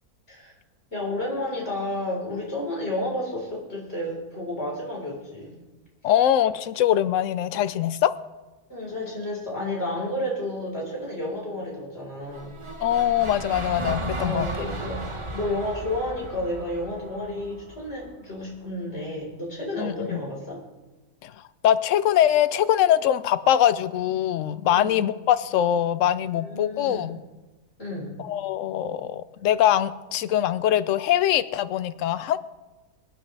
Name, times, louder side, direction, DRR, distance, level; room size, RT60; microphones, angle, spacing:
voice 1, 0.9-5.5 8.7-12.6 14.1-20.6 24.7-25.0 26.3-27.1 27.8-28.2, left 1 dB, 40° left, -4 dB, 4.5 m, -31 dB
voice 2, 6.0-8.1 12.8-14.5 19.8-20.2 21.2-21.3 21.6-27.2 28.2-32.4, left 11 dB, 65° left, 14 dB, 0.8 m, -22 dB
sound 1, 12.3-18.4, right 2 dB, 25° right, 0.7 m, -35 dB
24.0 x 9.6 x 3.3 m, 1.1 s
omnidirectional pair, 1.6 m